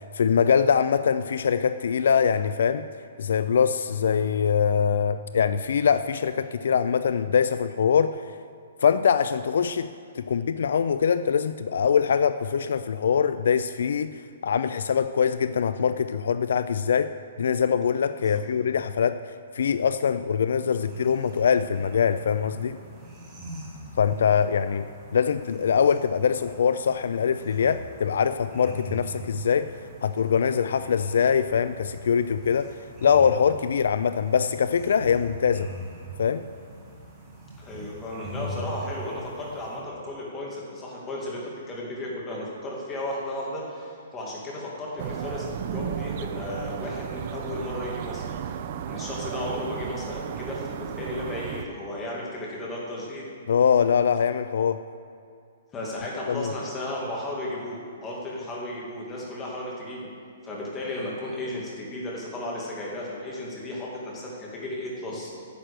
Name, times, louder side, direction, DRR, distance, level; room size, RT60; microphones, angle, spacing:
voice 1, 0.1-2.9 3.2-8.2 8.8-9.9 10.1-19.2 19.5-22.8 24.0-29.7 30.0-32.7 33.0-35.7 36.2-36.5 53.5-54.8 56.3-56.5, left 7 dB, 70° left, 12 dB, 0.3 m, -23 dB
sound 1, 20.6-39.8, right 1 dB, 10° right, 2.0 m, -42 dB
voice 2, 37.6-48.6 48.9-53.3 55.7-60.1 60.4-65.3, left 1 dB, 15° left, -4 dB, 2.1 m, -34 dB
sound 2, 45.0-51.7, right 8 dB, 35° right, 0.5 m, -34 dB
10.0 x 7.6 x 6.6 m, 2.4 s
hypercardioid pair, 170°, 0 cm